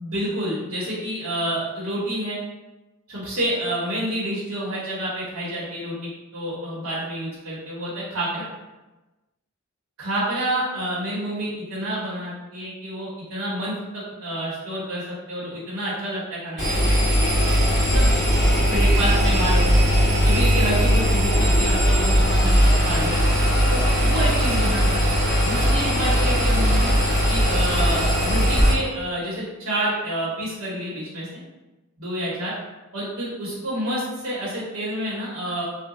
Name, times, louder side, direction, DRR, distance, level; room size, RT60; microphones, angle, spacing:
voice 1, 0.0-2.4 3.1-8.5 10.0-16.8 17.8-18.1 18.7-19.7 20.2-23.1 23.7-25.0 25.4-27.0 27.3-31.4 32.0-32.5 32.9-35.6, right 1 dB, 70° right, -8 dB, 1.0 m, -28 dB
Engine, 16.6-28.7, equal, 5° left, 1.4 m, -19 dB
2.9 x 2.2 x 3.7 m, 1.1 s
head